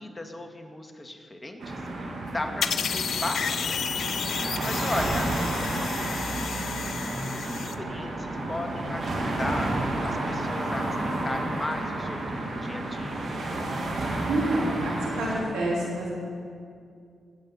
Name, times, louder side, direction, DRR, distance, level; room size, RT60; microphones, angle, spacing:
voice 1, 0.0-6.4 7.1-9.7 10.0-13.3, left 2 dB, 25° left, 4 dB, 2.0 m, -37 dB
sound 1, 1.6-15.4, right 1 dB, 70° right, 2.4 m, -31 dB
sound 2, 2.6-7.7, left 7 dB, 70° left, 0.5 m, -32 dB
voice 2, 14.3-16.1, right 1 dB, 85° right, -5 dB, 3.4 m, -28 dB
20.0 x 8.2 x 5.5 m, 2.4 s
hypercardioid pair, 40°, 0 cm